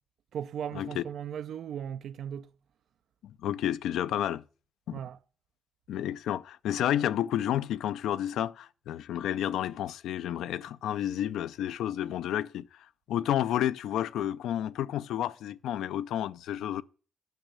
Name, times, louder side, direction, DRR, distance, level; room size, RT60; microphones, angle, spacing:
voice 1, 0.3-2.5 4.9-5.2, right 9 dB, 75° right, 0.4 m, -37 dB
voice 2, 3.2-4.4 4.9-5.0 5.9-12.7 13.1-16.8, left 11 dB, 85° left, 0.4 m, -31 dB
9.1 x 6.4 x 6.7 m
supercardioid pair, 60°, 0 cm